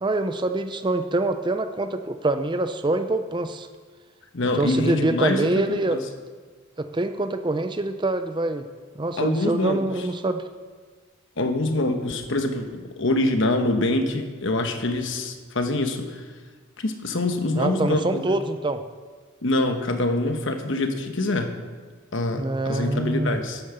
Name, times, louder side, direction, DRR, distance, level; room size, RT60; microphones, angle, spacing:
voice 1, 0.0-3.7 4.5-6.0 6.8-8.6 9.0-10.4 17.6-18.8 22.3-23.4, right 2 dB, 20° right, 9 dB, 0.5 m, -25 dB
voice 2, 4.3-6.0 9.2-9.8 11.4-16.2 16.8-18.3 19.4-21.5 22.1-23.6, left 2 dB, 60° left, 6 dB, 1.1 m, -25 dB
11.0 x 8.7 x 6.8 m, 1.5 s
head